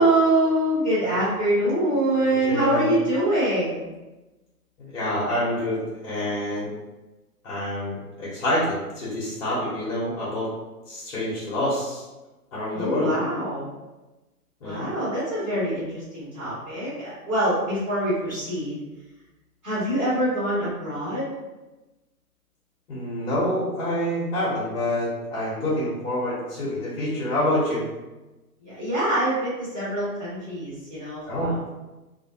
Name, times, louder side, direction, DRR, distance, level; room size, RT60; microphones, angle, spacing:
voice 1, 0.0-3.8 12.7-13.7 14.6-18.7 19.6-21.3 28.6-31.6, right 1 dB, ahead, -38 dB, 0.4 m, -24 dB
voice 2, 2.3-2.9 4.8-6.7 7.4-10.5 10.9-12.0 12.5-13.1 14.6-14.8 22.9-27.8 31.3-31.6, left 1 dB, 55° left, -8 dB, 1.1 m, -27 dB
2.5 x 2.4 x 2.7 m, 1.1 s
hypercardioid pair, 135°, 47 cm